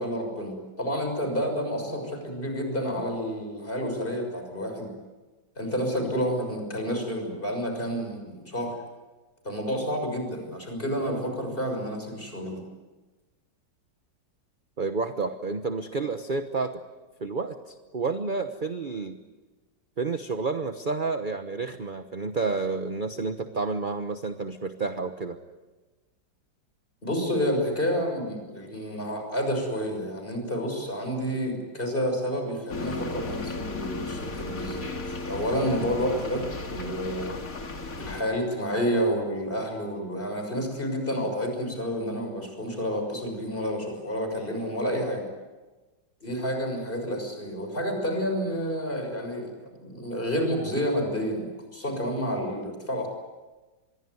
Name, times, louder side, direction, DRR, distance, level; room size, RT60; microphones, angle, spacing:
voice 1, 0.0-4.9 5.6-8.8 9.4-12.6 27.0-37.3 38.0-45.2 46.2-53.1, equal, 25° left, 4 dB, 6.5 m, -29 dB
voice 2, 14.8-16.8 17.2-19.2 20.0-25.4, right 4 dB, 30° right, 8 dB, 1.1 m, -30 dB
sound 1, 32.7-38.2, left 2 dB, 50° left, 2.6 m, -35 dB
26.0 x 22.5 x 9.6 m, 1.2 s
omnidirectional pair, 2.0 m